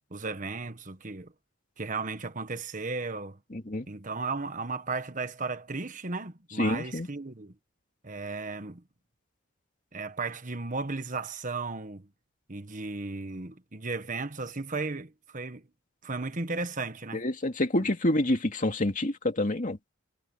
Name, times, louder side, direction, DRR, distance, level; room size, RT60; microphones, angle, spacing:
voice 1, 0.1-1.3 1.8-3.4 3.9-7.5 8.0-8.8 9.9-12.1 12.5-15.6 16.0-17.2 17.8-17.9, right 3 dB, 40° right, 1.4 m, -35 dB
voice 2, 3.5-3.9 6.6-7.1 17.1-19.8, left 1 dB, 40° left, 2.3 m, -27 dB
head